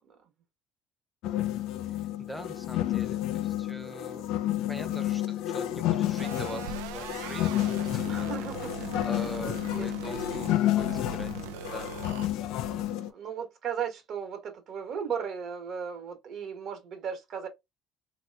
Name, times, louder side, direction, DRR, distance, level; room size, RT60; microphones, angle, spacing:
sound 1, 1.2-13.1, left 13 dB, 75° left, 0.4 m, -30 dB
voice 1, 1.9-4.3 4.7-8.3 8.6-11.3 11.6-12.0, equal, ahead, 0.8 m, -43 dB
sound 2, 6.2-12.3, right 7 dB, 85° right, 0.4 m, -40 dB
voice 2, 8.0-8.7 9.2-10.2 12.6-17.5, right 7 dB, 60° right, 1.2 m, -37 dB
3.0 x 2.9 x 2.2 m
supercardioid pair, 75°, 0 cm